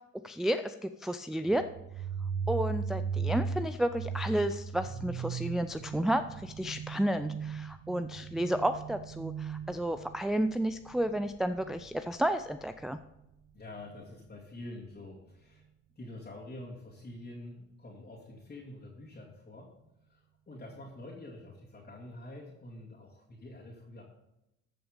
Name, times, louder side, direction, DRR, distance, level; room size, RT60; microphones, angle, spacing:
voice 1, 0.2-1.7 2.5-13.0, right 1 dB, ahead, 8 dB, 0.4 m, -31 dB
sound 1, 1.5-13.0, right 6 dB, 60° right, 0.9 m, -38 dB
voice 2, 13.5-15.7 16.0-19.7 20.1-24.0, left 1 dB, 30° left, -5 dB, 2.5 m, -47 dB
14.0 x 6.0 x 5.2 m, 0.90 s
cardioid pair, 90°, 30 cm